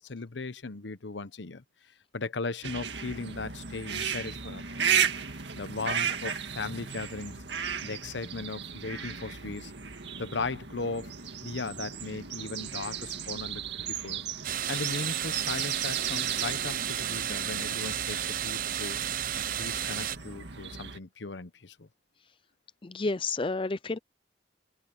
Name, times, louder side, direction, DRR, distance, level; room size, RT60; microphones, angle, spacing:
voice 1, 0.0-1.6 2.1-4.9 5.6-7.5 7.8-9.7 10.2-11.1 11.4-14.2 14.7-19.0 19.4-21.9, left 3 dB, 80° left, 0.9 m, -37 dB
sound 1, 2.6-21.0, right 7 dB, 75° right, 2.0 m, -35 dB
sound 2, 14.4-20.2, right 10 dB, 50° right, 0.6 m, -32 dB
voice 2, 22.8-24.0, left 3 dB, 30° left, 0.5 m, -30 dB
head